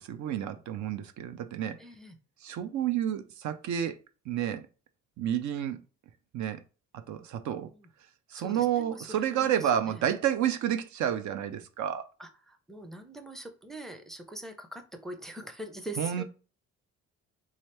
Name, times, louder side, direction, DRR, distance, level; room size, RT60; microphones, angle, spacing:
voice 1, 0.0-1.8 2.4-4.0 4.3-4.6 5.2-5.8 6.3-6.6 6.9-7.7 8.3-12.0 16.0-16.2, right 10 dB, 70° right, 0.5 m, -30 dB
voice 2, 1.8-2.2 7.7-7.9 8.3-10.0 12.2-16.2, right 1 dB, ahead, 0.5 m, -43 dB
3.6 x 2.8 x 3.2 m
cardioid pair, 90°, 30 cm